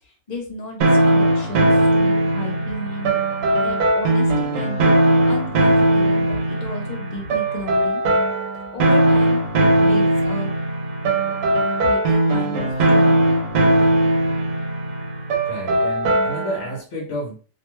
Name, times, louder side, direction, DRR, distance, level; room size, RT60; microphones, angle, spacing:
voice 1, 0.3-3.1 3.6-4.9 5.3-8.0 8.7-10.5 11.8-13.1, left 1 dB, 40° left, 1 dB, 0.7 m, -33 dB
sound 1, 0.8-16.7, right 1 dB, 85° right, 1.0 m, -19 dB
voice 2, 15.4-17.4, equal, 60° left, -1 dB, 0.9 m, -30 dB
2.6 x 2.2 x 3.0 m, 0.39 s
omnidirectional pair, 1.4 m